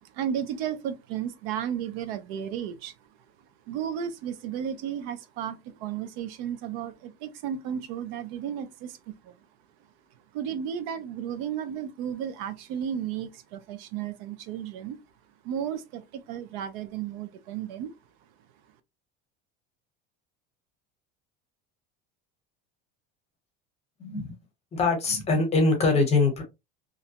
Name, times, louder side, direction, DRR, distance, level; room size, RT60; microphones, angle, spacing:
voice 1, 0.0-2.9 3.7-9.4 10.3-15.0 15.4-17.9, right 9 dB, 85° right, 0.6 m, -33 dB
voice 2, 24.0-24.3 24.7-26.4, left 3 dB, 20° left, 0.9 m, -23 dB
2.7 x 2.1 x 2.7 m
cardioid pair, 155°, 29 cm